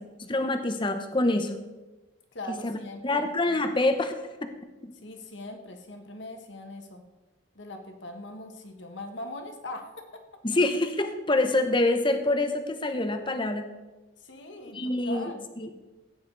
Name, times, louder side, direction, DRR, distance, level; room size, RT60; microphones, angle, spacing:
voice 1, 0.2-1.6 2.5-2.8 3.0-4.1 4.4-4.5 4.8-4.9 10.4-13.7 14.7-15.3 15.6-15.7, left 2 dB, 25° left, 7 dB, 0.9 m, -26 dB
voice 2, 2.3-3.6 5.0-7.1 7.5-10.2 14.2-15.5, left 1 dB, 60° left, 4 dB, 1.6 m, -41 dB
15.5 x 9.4 x 4.0 m, 1.1 s
head